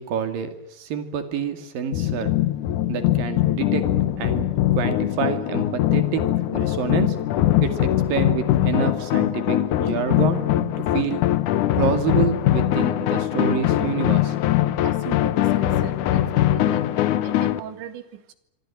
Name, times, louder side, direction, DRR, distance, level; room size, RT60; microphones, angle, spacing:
voice 1, 0.0-2.3 2.9-3.9 4.2-7.2 7.6-11.2 11.8-14.4, right 7 dB, 55° right, 8 dB, 3.9 m, -28 dB
sound 1, 1.9-17.6, left 13 dB, 85° left, 1.7 m, -22 dB
voice 2, 14.8-16.9 17.2-18.0 18.3-18.4, right 11 dB, 85° right, 10 dB, 4.4 m, -39 dB
26.0 x 24.5 x 7.6 m, 0.87 s
omnidirectional pair, 5.1 m